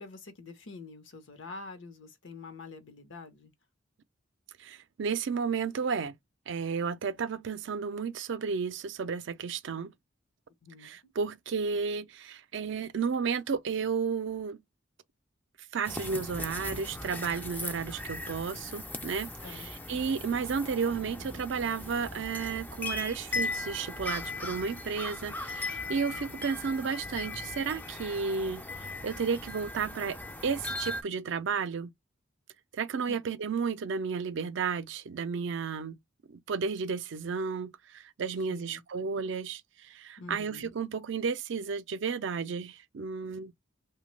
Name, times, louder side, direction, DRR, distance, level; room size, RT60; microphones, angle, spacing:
voice 1, 0.0-3.5 10.6-11.1 19.4-20.0 25.9-26.5 33.1-33.2 38.5-38.8 40.2-40.7, left 3 dB, 70° left, 0.8 m, -47 dB
voice 2, 4.6-6.2 6.5-9.9 10.8-14.6 15.7-28.6 29.0-31.9 32.7-36.0 36.3-43.5, right 5 dB, 65° right, 0.4 m, -33 dB
sound 1, 15.8-31.0, left 2 dB, 10° left, 0.3 m, -38 dB
2.9 x 2.2 x 3.1 m
head